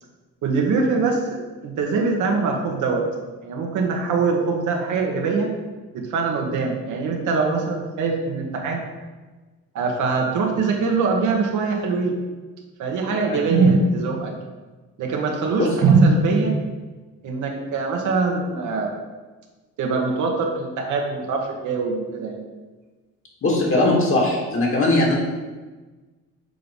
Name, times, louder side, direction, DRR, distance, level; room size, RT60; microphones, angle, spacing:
voice 1, 0.4-3.1 3.4-5.5 5.9-8.8 9.7-12.2 12.8-14.3 15.0-16.5 17.2-18.9 19.8-22.4, right 4 dB, 75° right, 1 dB, 1.3 m, -22 dB
voice 2, 23.4-25.1, left 2 dB, 45° left, -2 dB, 2.2 m, -19 dB
6.6 x 3.9 x 5.4 m, 1.3 s
cardioid pair, 90°, 30 cm